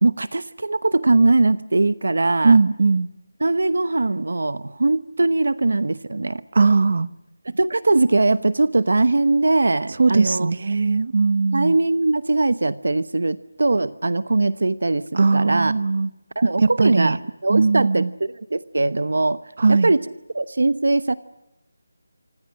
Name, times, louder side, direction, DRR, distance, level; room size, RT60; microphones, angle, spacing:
voice 1, 0.0-2.6 3.4-6.4 7.4-10.5 11.5-15.7 16.4-19.4 19.7-20.0 20.3-21.1, right 2 dB, 80° right, 1.0 m, -21 dB
voice 2, 2.4-3.1 6.5-7.1 10.0-11.7 15.1-16.1 16.8-17.2 17.5-18.1 19.6-19.9, right 4 dB, 50° right, 0.9 m, -18 dB
29.5 x 26.0 x 6.4 m
figure-of-eight pair, 175°, 0 cm